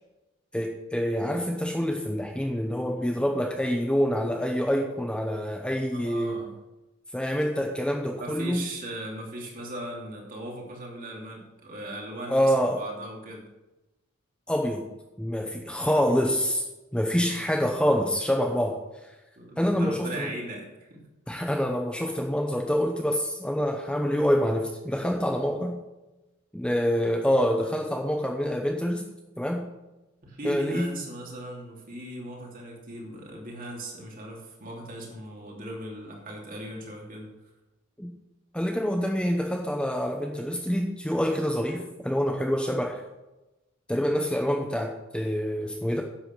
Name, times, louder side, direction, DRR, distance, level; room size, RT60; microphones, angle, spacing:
voice 1, 0.5-6.4 7.1-8.6 12.3-12.8 14.5-14.9 15.2-16.6 16.9-18.8 19.6-20.3 21.3-25.8 26.5-29.1 29.4-29.7 30.4-31.0 38.0-38.1 38.5-43.0 43.9-46.0, equal, 5° left, 2 dB, 0.8 m, -26 dB
voice 2, 5.9-6.5 8.1-13.5 17.2-17.5 19.4-21.0 30.2-37.3, right 1 dB, 40° right, -1 dB, 3.0 m, -38 dB
10.0 x 8.0 x 6.1 m, 1.0 s
head